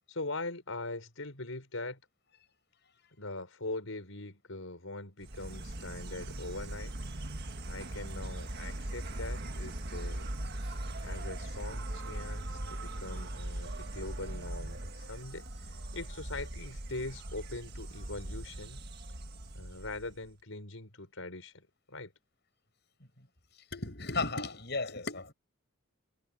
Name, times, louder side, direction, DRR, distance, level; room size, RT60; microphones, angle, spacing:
voice 1, 0.1-2.0 3.2-7.0 7.7-10.3 11.0-18.8 19.5-22.1, left 2 dB, 80° left, 5.1 m, -42 dB
Insect, 5.2-20.3, right 1 dB, 50° right, 1.7 m, -40 dB
voice 2, 23.7-25.3, left 3 dB, 55° left, 7.8 m, -34 dB
head